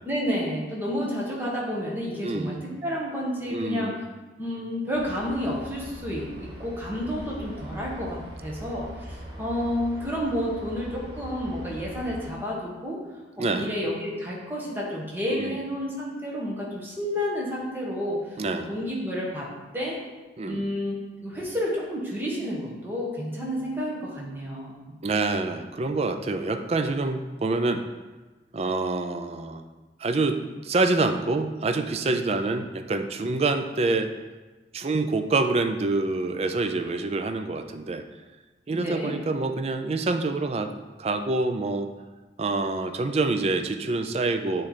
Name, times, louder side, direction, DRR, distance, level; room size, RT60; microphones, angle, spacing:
voice 1, 0.1-3.9 4.4-13.0 13.4-19.5 19.7-20.0 20.4-21.0 21.2-24.8 38.7-39.1, equal, 10° right, -4 dB, 1.3 m, -30 dB
voice 2, 2.2-2.6 3.5-4.0 13.4-13.7 15.3-15.5 18.4-18.7 20.4-20.7 25.0-27.8 28.5-29.6 30.0-34.1 34.7-38.0 38.7-40.7 41.0-41.9 42.4-44.7, right 3 dB, 35° right, 7 dB, 0.4 m, -26 dB
sound 1, 4.9-12.3, equal, 75° right, 1.1 m, -41 dB
8.7 x 3.2 x 4.2 m, 1.2 s
head